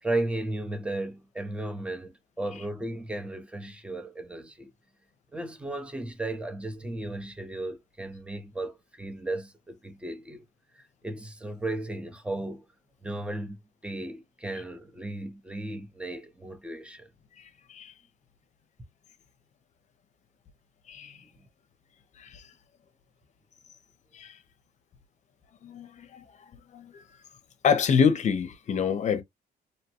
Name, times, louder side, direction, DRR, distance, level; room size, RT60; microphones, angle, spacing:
voice 1, 0.0-4.7 5.3-10.5 10.7-12.7 13.0-17.1 21.0-21.4, right 2 dB, 5° right, 0.7 m, -35 dB
voice 2, 25.6-26.2 26.7-27.0 27.6-29.2, left 6 dB, 45° left, 0.7 m, -26 dB
2.8 x 2.2 x 2.9 m
cardioid pair, 110°, 17 cm